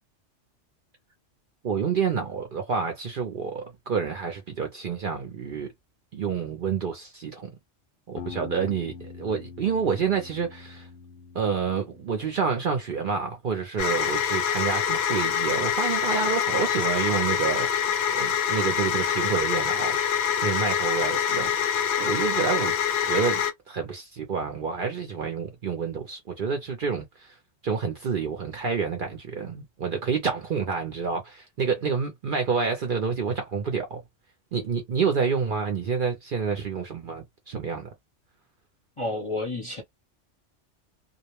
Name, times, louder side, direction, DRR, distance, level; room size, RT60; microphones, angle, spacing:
voice 1, 1.6-5.7 6.1-7.5 8.1-10.9 11.3-17.7 18.1-20.0 20.4-22.7 23.1-27.4 27.6-34.0 34.5-37.9, right 6 dB, 55° right, 0.6 m, -28 dB
sound 1, 8.2-12.8, left 6 dB, 90° left, 1.0 m, -43 dB
sound 2, 13.8-23.5, left 8 dB, 65° left, 0.7 m, -25 dB
voice 2, 39.0-39.8, left 2 dB, 30° left, 0.6 m, -30 dB
2.4 x 2.1 x 2.9 m
omnidirectional pair, 1.3 m